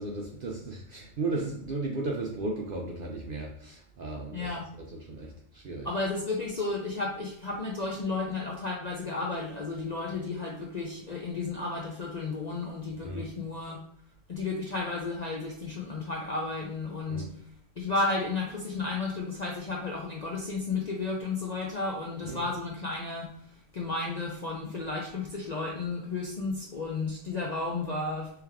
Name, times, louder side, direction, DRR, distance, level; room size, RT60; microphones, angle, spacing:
voice 1, 0.0-4.5 4.8-5.9 13.0-13.3 17.1-17.3 22.2-22.5, right 2 dB, 60° right, 0 dB, 0.6 m, -35 dB
voice 2, 4.3-4.6 5.8-13.8 14.3-17.2 17.8-23.3 23.7-28.3, left 3 dB, 50° left, -2 dB, 0.5 m, -33 dB
3.2 x 3.1 x 3.5 m, 0.69 s
omnidirectional pair, 1.4 m